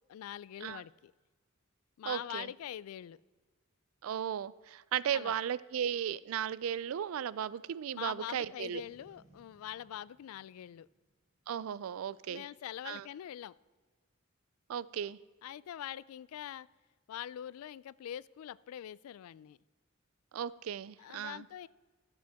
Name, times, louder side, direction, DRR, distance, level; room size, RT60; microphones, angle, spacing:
voice 1, 0.1-1.1 2.0-3.2 5.1-5.4 7.9-10.9 12.3-13.6 15.4-16.7 17.1-19.6 21.0-21.7, left 11 dB, 90° left, 18 dB, 0.3 m, -44 dB
voice 2, 2.1-2.5 4.0-8.8 11.5-12.4 12.9-13.0 14.7-15.2 20.3-21.5, right 9 dB, 75° right, 19 dB, 0.3 m, -36 dB
Boom, 8.8-12.1, right 1 dB, 30° right, 3.8 m, -66 dB
15.0 x 7.5 x 3.5 m, 1.4 s
head